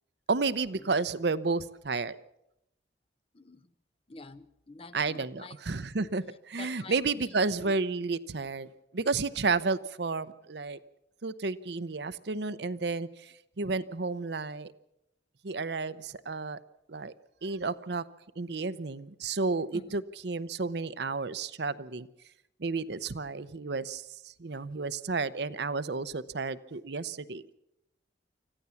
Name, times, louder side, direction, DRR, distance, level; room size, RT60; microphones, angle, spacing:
voice 1, 0.3-2.2 4.9-10.8 11.2-14.7 15.4-16.6 16.9-17.1 17.4-18.0 18.4-22.1 22.6-27.4, right 4 dB, 65° right, 14 dB, 0.7 m, -32 dB
voice 2, 4.1-5.5 6.0-6.1 6.6-7.0 7.7-7.8 19.7-20.0, left 2 dB, 30° left, 12 dB, 0.8 m, -47 dB
25.5 x 15.0 x 7.0 m, 0.84 s
head